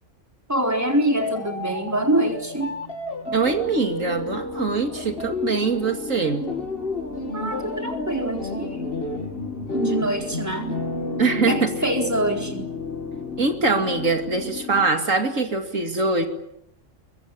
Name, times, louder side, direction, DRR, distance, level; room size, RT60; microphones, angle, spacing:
voice 1, 0.5-2.8 7.3-9.0 9.7-10.8 11.5-12.7, right 1 dB, 10° right, 3 dB, 4.1 m, -25 dB
sound 1, 1.2-14.2, left 2 dB, 45° left, 2.8 m, -32 dB
sound 2, 3.2-14.9, left 5 dB, 85° left, 5.8 m, -37 dB
voice 2, 3.3-6.5 11.2-11.7 13.4-16.3, right 4 dB, 80° right, 5 dB, 2.9 m, -23 dB
24.0 x 22.5 x 9.1 m, 0.78 s
omnidirectional pair, 1.3 m